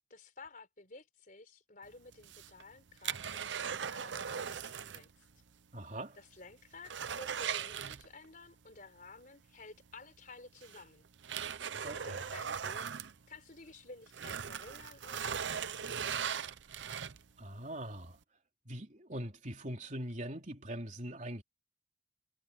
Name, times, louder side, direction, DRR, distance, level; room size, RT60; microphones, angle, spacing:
voice 1, 0.1-5.2 6.2-11.1 11.9-12.9 13.3-15.9, left 3 dB, 45° left, 4.1 m, -53 dB
sound 1, 2.1-5.1 5.4-5.5 6.0-6.1 6.4-8.4 9.9-10.0 10.6-13.7 14.1-17.4 17.9-18.0, right 7 dB, 80° right, 0.7 m, -39 dB
voice 2, 5.7-6.2 11.8-12.2 17.4-18.2 18.7-21.4, right 1 dB, 45° right, 3.6 m, -42 dB
head